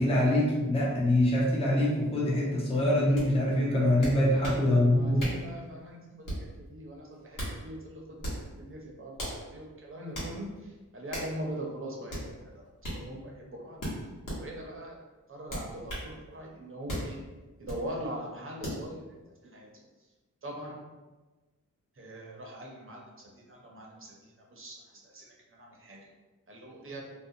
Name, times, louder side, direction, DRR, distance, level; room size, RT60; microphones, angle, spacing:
voice 1, 0.0-5.3, left 1 dB, 20° left, -4 dB, 0.6 m, -24 dB
sound 1, 3.2-3.3 4.0-4.6 5.2-5.5 6.2-6.5 7.1-7.6 8.2-8.5 9.2-9.4 10.1-10.3 11.1-11.3 12.1-12.3 12.8-13.0 13.8-14.4 15.5-16.1 16.9-17.1 17.7-17.8 18.6-18.8, equal, 80° left, 1.1 m, -36 dB
voice 2, 4.3-4.6 4.9-12.7 12.9-13.8 14.4-15.0 15.3-17.2 17.6-19.0 19.5-19.9 20.4-20.8 22.0-26.1 26.5-27.1, right 1 dB, 40° right, -2 dB, 0.7 m, -42 dB
2.5 x 2.2 x 2.7 m, 1.2 s
wide cardioid pair, 70°, 32 cm